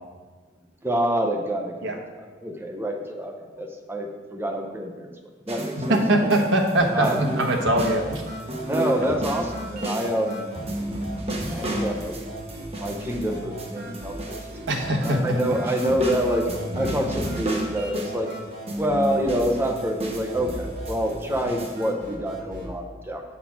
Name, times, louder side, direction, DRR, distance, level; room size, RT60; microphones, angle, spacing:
voice 1, 0.8-5.1 5.5-5.8 6.3-6.5 6.9-7.3 8.6-10.5 11.4-12.2 12.8-14.6 15.0-18.3 18.8-23.2, equal, 15° right, 3 dB, 0.5 m, -27 dB
sound 1, 5.5-6.7 7.0-14.8 15.0-18.3 18.7-21.8, right 1 dB, 35° right, 0.9 m, -32 dB
voice 2, 5.9-8.2 14.7-15.2, right 1 dB, 75° right, 2 dB, 1.0 m, -22 dB
sound 2, 6.8-22.8, right 1 dB, 50° right, 2.2 m, -38 dB
7.3 x 4.0 x 5.7 m, 1.4 s
head